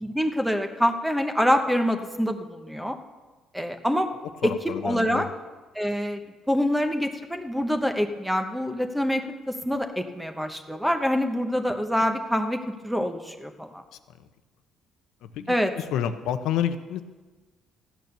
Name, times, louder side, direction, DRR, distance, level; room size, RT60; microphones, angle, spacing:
voice 1, 0.0-3.0 3.5-4.1 4.4-5.3 5.7-6.2 6.5-13.8 15.5-15.7, equal, 5° right, 6 dB, 1.0 m, -26 dB
voice 2, 4.4-5.3 14.2-14.3 15.2-17.0, left 9 dB, 80° left, 10 dB, 0.8 m, -29 dB
14.0 x 9.2 x 6.8 m, 1.3 s
cardioid pair, 115°, 0 cm